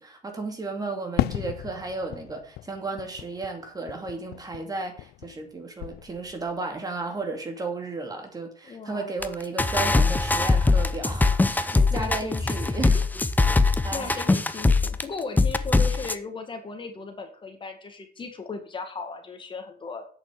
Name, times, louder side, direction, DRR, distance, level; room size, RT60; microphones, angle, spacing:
voice 1, 0.0-13.1 13.8-14.2, right 3 dB, 25° right, 4 dB, 2.5 m, -34 dB
Fireworks, 1.2-5.5 5.8-6.6, left 16 dB, 85° left, 0.5 m, -34 dB
voice 2, 8.6-9.1 11.9-12.6 12.9-13.6 13.9-20.1, left 4 dB, 30° left, 5 dB, 2.0 m, -37 dB
sound 1, 9.2-9.3 9.6-15.0 15.4-16.2, left 3 dB, 10° left, 0.7 m, -22 dB
8.4 x 6.9 x 7.7 m, 0.43 s
cardioid pair, 135°, 16 cm